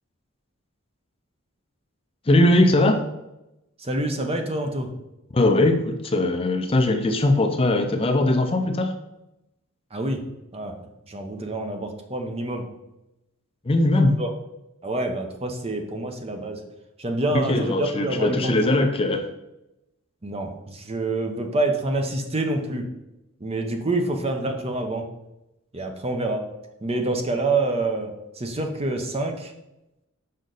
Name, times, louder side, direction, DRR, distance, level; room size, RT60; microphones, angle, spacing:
voice 1, 2.3-3.0 5.3-8.9 13.7-14.1 17.3-19.2, left 2 dB, 25° left, 5 dB, 0.5 m, -20 dB
voice 2, 3.8-4.9 9.9-10.2 10.5-10.7 11.1-12.6 14.2-14.3 14.8-16.6 17.0-18.9 20.2-22.8 23.4-25.0 25.7-26.4 26.8-29.5, right 2 dB, 30° right, 4 dB, 0.8 m, -27 dB
6.5 x 5.1 x 4.0 m, 0.91 s
head